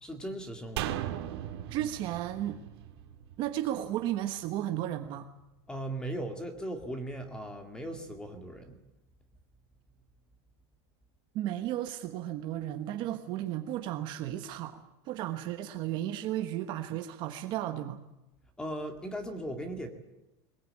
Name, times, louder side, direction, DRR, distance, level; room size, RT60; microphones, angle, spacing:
voice 1, 0.0-1.1 5.7-8.8 18.6-19.9, right 1 dB, 5° left, 6 dB, 2.0 m, -38 dB
Acoustic guitar / Strum, 0.8-6.2, equal, 35° left, 6.1 m, -55 dB
sound 1, 0.8-4.1 4.4-4.5, right 13 dB, 65° right, 2.2 m, -38 dB
voice 2, 1.7-2.6 3.4-5.3 11.3-18.0, right 12 dB, 35° right, 7 dB, 1.3 m, -34 dB
21.5 x 21.0 x 8.7 m, 0.93 s
supercardioid pair, 180°, 14 cm